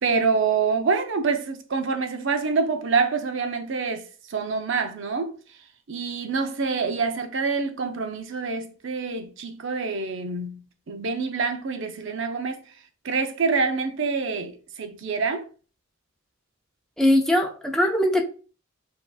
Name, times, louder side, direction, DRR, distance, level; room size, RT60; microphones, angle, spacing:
voice 1, 0.0-5.3 5.9-10.6 10.9-12.6 13.0-15.5, right 4 dB, 65° right, 0.6 m, -26 dB
voice 2, 17.0-18.2, left 1 dB, 5° left, 0.7 m, -20 dB
7.6 x 2.7 x 2.3 m
head